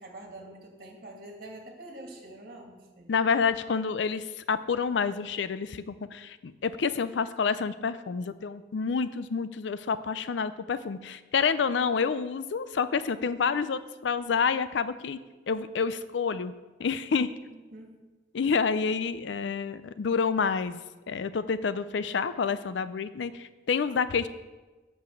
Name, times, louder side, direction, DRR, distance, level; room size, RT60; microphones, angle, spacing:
voice 1, 0.0-3.1 17.5-18.0, right 1 dB, 50° right, 0 dB, 2.2 m, -46 dB
voice 2, 3.1-15.2 15.5-16.5 16.8-17.3 18.3-20.8 21.1-24.3, left 5 dB, 75° left, 14 dB, 0.4 m, -28 dB
8.2 x 7.0 x 6.2 m, 1.2 s
head